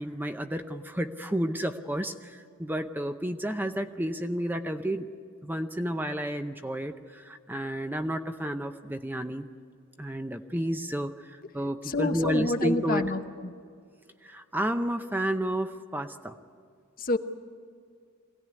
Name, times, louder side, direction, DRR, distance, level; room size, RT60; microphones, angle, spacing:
voice 1, 0.0-5.1 5.4-9.5 10.0-13.0 14.2-16.4, right 1 dB, 10° right, 7 dB, 0.6 m, -31 dB
voice 2, 11.8-13.5 17.0-17.2, left 2 dB, 40° left, 7 dB, 1.0 m, -28 dB
23.0 x 17.0 x 9.6 m, 2.2 s
head